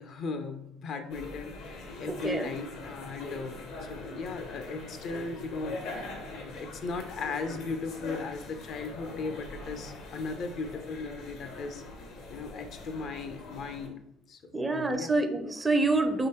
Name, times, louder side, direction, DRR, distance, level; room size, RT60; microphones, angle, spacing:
voice 1, 0.0-11.8 12.3-14.0 14.3-15.1, left 4 dB, 60° left, 7 dB, 0.6 m, -37 dB
sound 1, 1.1-13.9, left 2 dB, 75° left, 1.0 m, -42 dB
voice 2, 2.1-2.5 14.5-16.3, right 2 dB, 20° right, 7 dB, 0.5 m, -27 dB
3.8 x 2.9 x 4.2 m, 0.78 s
supercardioid pair, 90°, 0 cm